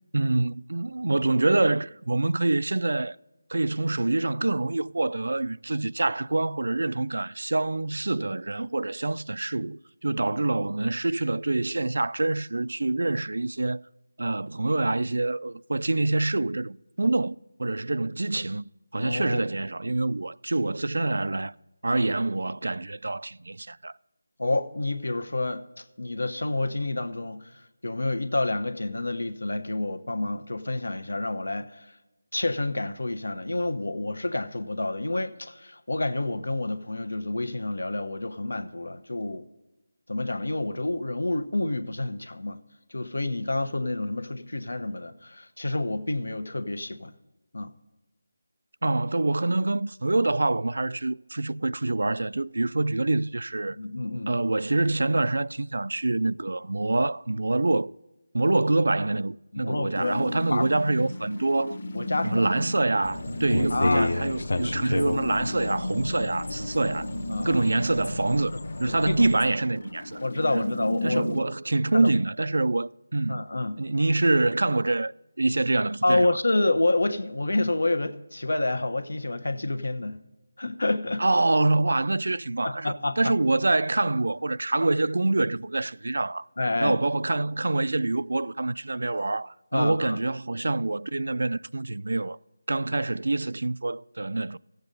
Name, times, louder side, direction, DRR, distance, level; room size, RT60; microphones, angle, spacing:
voice 1, 0.1-3.2 3.5-13.8 14.2-21.5 21.8-23.9 48.8-53.8 54.3-57.9 58.3-61.8 62.2-67.1 67.4-70.2 70.5-70.7 71.0-73.4 73.8-75.1 75.4-76.3 81.2-86.5 86.8-92.4 92.7-94.6, right 2 dB, 70° right, 0.3 m, -26 dB
voice 2, 19.0-19.4 24.4-27.4 27.8-31.9 32.3-39.4 40.1-42.6 42.9-47.1 47.5-47.7 53.7-54.4 59.5-60.2 60.5-60.7 61.9-62.5 63.7-64.1 67.3-67.6 68.9-69.3 70.2-71.4 71.9-72.1 73.3-73.8 76.0-80.2 80.6-81.2 82.6-83.3 86.6-87.0 89.7-90.2, left 2 dB, 90° left, 1.0 m, -28 dB
sound 1, 59.9-71.4, left 1 dB, 45° left, 1.0 m, -34 dB
sound 2, 63.0-69.5, left 2 dB, 65° left, 0.8 m, -32 dB
15.0 x 7.9 x 5.3 m
figure-of-eight pair, 175°, 0 cm